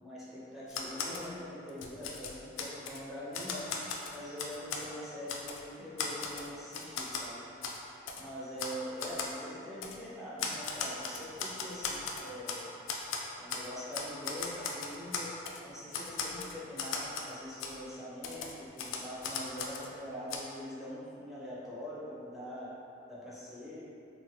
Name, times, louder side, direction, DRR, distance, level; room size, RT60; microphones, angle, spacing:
voice 1, 0.0-3.7 4.1-7.4 8.2-12.6 13.4-15.3 15.6-22.7 23.1-23.8, equal, ahead, -10 dB, 0.6 m, -43 dB
Typewriter, 0.7-1.3 1.7-3.0 3.3-4.9 5.3-5.6 6.0-7.3 7.6-7.8 8.1-8.2 8.6-8.7 9.0-9.3 9.8-10.0 10.4-12.6 12.9-13.7 13.9-15.6 15.9-17.3 17.6-17.7 18.2-19.9 20.3-20.4, left 5 dB, 90° left, 0.3 m, -37 dB
3.0 x 2.2 x 2.8 m, 2.7 s
head